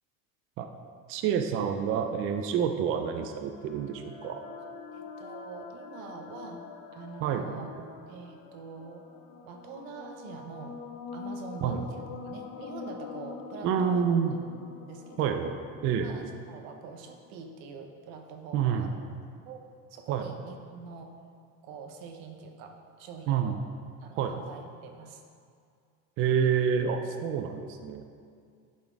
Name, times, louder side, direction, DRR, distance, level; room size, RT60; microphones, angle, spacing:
voice 1, 1.1-4.4 7.2-7.4 11.6-11.8 13.6-14.4 15.2-15.5 15.8-16.1 18.5-18.9 20.1-20.2 23.3-23.5 24.2-24.3 26.2-28.1, right 7 dB, 35° right, 6 dB, 0.4 m, -28 dB
sound 1, 3.2-16.8, left 5 dB, 80° left, 0.8 m, -45 dB
voice 2, 4.9-6.6 6.9-7.7 8.1-9.0 9.4-10.8 11.1-14.1 14.8-15.4 16.0-19.0 19.5-21.1 21.6-23.6 24.0-25.2, right 5 dB, 90° right, 4 dB, 1.0 m, -44 dB
10.5 x 4.3 x 4.6 m, 2.2 s
cardioid pair, 160°, 39 cm